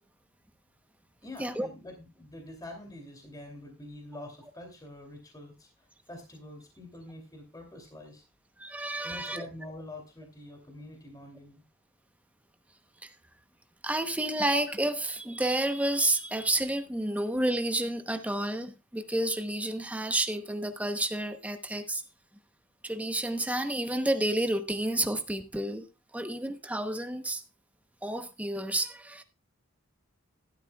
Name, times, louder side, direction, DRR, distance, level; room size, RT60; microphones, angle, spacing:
voice 1, 1.2-8.2 9.0-11.6, left 1 dB, 15° left, 2.8 m, -46 dB
voice 2, 8.6-9.5 13.8-22.0 22.8-25.9 26.1-27.4 28.0-29.2, right 1 dB, 5° right, 0.9 m, -30 dB
14.5 x 12.0 x 2.3 m
head